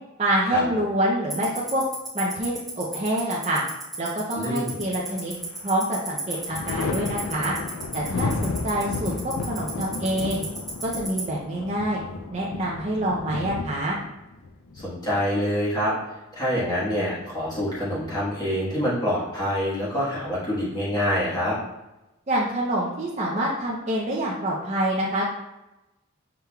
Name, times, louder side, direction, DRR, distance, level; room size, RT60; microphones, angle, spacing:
voice 1, 0.2-1.8 2.1-3.6 4.0-5.3 5.6-7.5 7.9-10.4 10.8-12.0 12.3-14.0 22.3-25.2, right 1 dB, 30° right, -5 dB, 0.5 m, -26 dB
Tick-tock, 1.3-11.2, right 3 dB, ahead, 0.9 m, -32 dB
voice 2, 4.4-4.8 14.7-21.6, equal, 20° left, -9 dB, 1.3 m, -26 dB
Thunder, 4.9-5.6 6.0-15.6 17.1-17.9, left 3 dB, 75° left, 0.4 m, -33 dB
5.9 x 3.3 x 2.3 m, 0.97 s
head